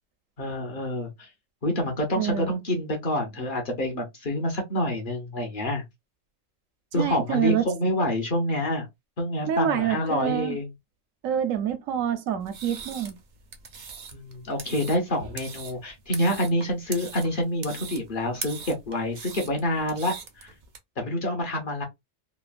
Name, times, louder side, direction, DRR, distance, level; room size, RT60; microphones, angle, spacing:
voice 1, 0.4-1.3 1.6-5.8 6.9-8.9 9.2-10.7 14.1-20.5 21.0-21.8, left 1 dB, 45° left, 0.8 m, -27 dB
voice 2, 2.2-2.5 7.0-7.6 9.5-10.6 11.2-13.2, right 9 dB, 80° right, 1.0 m, -26 dB
sound 1, 12.4-20.8, right 6 dB, 55° right, 0.5 m, -41 dB
3.1 x 2.0 x 2.4 m
omnidirectional pair, 1.4 m